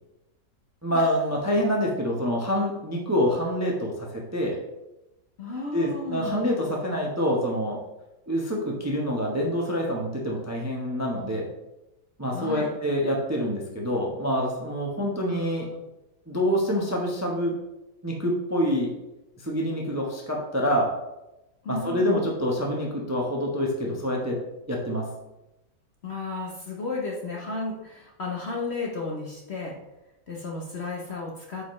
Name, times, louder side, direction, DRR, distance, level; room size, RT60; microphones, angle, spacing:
voice 1, 0.8-4.6 5.7-7.8 8.3-11.5 12.2-15.7 16.3-17.6 18.0-18.9 19.4-20.9 21.7-24.4 24.7-25.1, equal, 15° right, -1 dB, 0.7 m, -26 dB
voice 2, 5.4-6.4 12.3-12.7 15.1-15.7 21.6-22.4 26.0-29.8 30.3-31.7, left 3 dB, 45° left, -1 dB, 1.0 m, -33 dB
8.7 x 5.1 x 3.2 m, 0.94 s
omnidirectional pair, 1.8 m